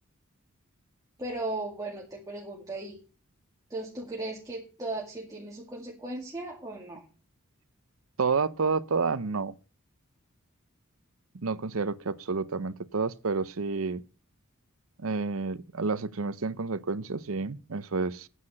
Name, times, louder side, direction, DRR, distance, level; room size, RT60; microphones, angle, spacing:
voice 1, 1.2-3.0 3.7-7.0, right 2 dB, 15° right, 2.2 m, -37 dB
voice 2, 8.2-9.5 11.4-14.0 15.0-18.3, right 4 dB, 75° right, 0.7 m, -30 dB
9.7 x 8.1 x 6.5 m
head